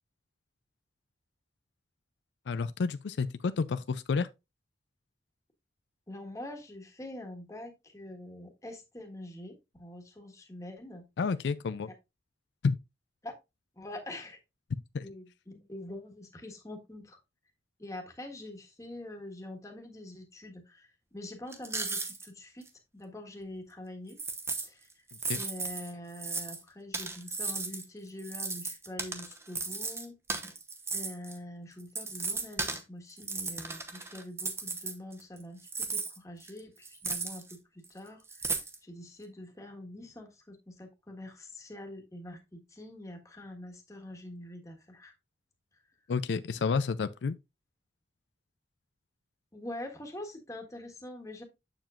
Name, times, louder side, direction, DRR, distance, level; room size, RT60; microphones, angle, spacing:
voice 1, 2.5-4.3 11.2-11.9 12.6-12.8 14.9-15.0 25.3-25.4 46.1-47.3, left 5 dB, 80° left, 0.4 m, -30 dB
voice 2, 6.1-11.0 11.8-11.9 13.2-13.3 13.7-14.4 15.0-17.2 17.8-22.7 22.9-24.2 24.6-24.9 25.3-30.1 30.9-45.1 49.5-51.4, left 1 dB, 20° left, 1.4 m, -45 dB
sound 1, 21.5-22.3 22.6-22.7 24.1-24.7 25.1-26.6 26.9-27.8 28.2-31.4 31.8-32.8 33.2-35.4 35.6-37.5 37.8-37.9 38.3-38.8, right 4 dB, 15° right, 0.9 m, -35 dB
7.5 x 7.0 x 2.4 m
head